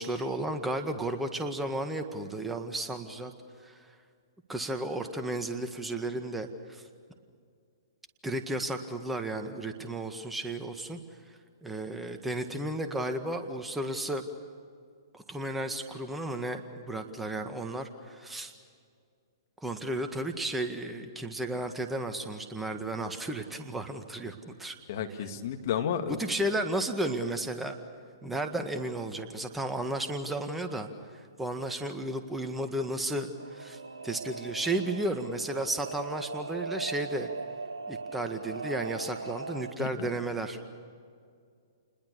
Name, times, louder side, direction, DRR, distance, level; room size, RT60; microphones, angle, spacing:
voice 1, 0.0-3.3 3.6-3.8 4.5-6.8 8.2-11.0 11.6-14.2 15.1-18.5 19.6-24.8 26.2-27.8 28.2-37.3 37.9-40.6, right 1 dB, 5° right, 6 dB, 1.8 m, -33 dB
voice 2, 24.9-26.3 39.8-40.1, left 8 dB, 50° left, 6 dB, 2.1 m, -32 dB
Singing / Musical instrument, 33.4-39.7, right 3 dB, 85° right, 2.3 m, -39 dB
29.5 x 21.0 x 6.9 m, 2.2 s
figure-of-eight pair, 120°, 2 cm